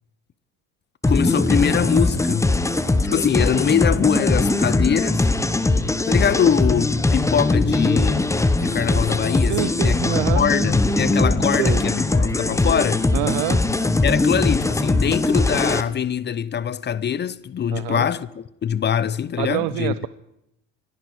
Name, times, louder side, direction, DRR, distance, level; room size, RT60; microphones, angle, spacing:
sound 1, 1.0-15.8, left 2 dB, 10° left, 0.9 m, -20 dB
voice 1, 1.1-2.5 3.1-5.3 6.1-13.1 14.0-18.3 18.6-20.1, left 8 dB, 30° left, 0.6 m, -23 dB
voice 2, 9.5-10.4 11.6-11.8 13.1-13.6 17.7-18.1 19.4-20.1, right 18 dB, 70° right, 0.6 m, -26 dB
27.5 x 10.5 x 4.7 m
supercardioid pair, 95°, 36 cm